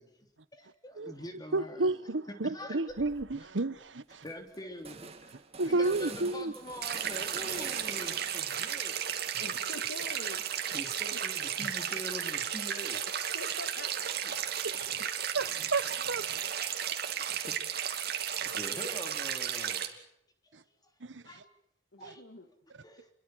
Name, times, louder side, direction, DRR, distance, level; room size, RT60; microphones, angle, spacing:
voice 1, 0.0-1.9 2.4-2.8 4.2-5.4 5.7-9.1 10.0-10.1 10.5-13.0 14.2-14.3 14.9-15.1 17.0-18.0 18.5-19.8 21.3-21.4 22.0-22.2 22.8-23.1, equal, 20° left, 3.4 m, -45 dB
voice 2, 1.5-4.2 5.6-6.5 14.6-15.0 15.3-16.5 18.4-18.5 20.5-20.6 21.0-21.2 22.0-22.1, right 2 dB, 85° right, 1.1 m, -32 dB
sound 1, 2.9-3.4 3.8-3.9 4.1-8.5 8.9-11.0, right 5 dB, 35° right, 2.3 m, -47 dB
sound 2, 6.8-19.9, right 9 dB, 60° right, 2.7 m, -34 dB
voice 3, 9.4-10.5 13.3-14.2 21.9-22.5, left 2 dB, 85° left, 2.4 m, -45 dB
29.0 x 22.5 x 6.3 m
head